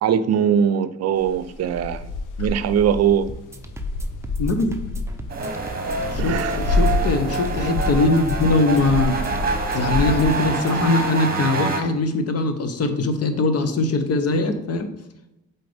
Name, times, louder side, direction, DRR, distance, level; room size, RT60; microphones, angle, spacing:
voice 1, 0.0-2.0 2.4-3.3 6.2-6.6, right 8 dB, 55° right, 13 dB, 0.5 m, -21 dB
sound 1, 1.2-10.3, left 2 dB, 85° left, 0.8 m, -27 dB
sound 2, 3.3-10.9, right 1 dB, 10° right, 0.6 m, -39 dB
voice 2, 4.4-4.7 6.1-9.2 9.7-14.9, left 3 dB, 55° left, 7 dB, 0.9 m, -21 dB
sound 3, 5.3-11.8, right 4 dB, 30° right, 1.1 m, -26 dB
7.6 x 4.1 x 3.5 m, 0.87 s
cardioid pair, 90°, 30 cm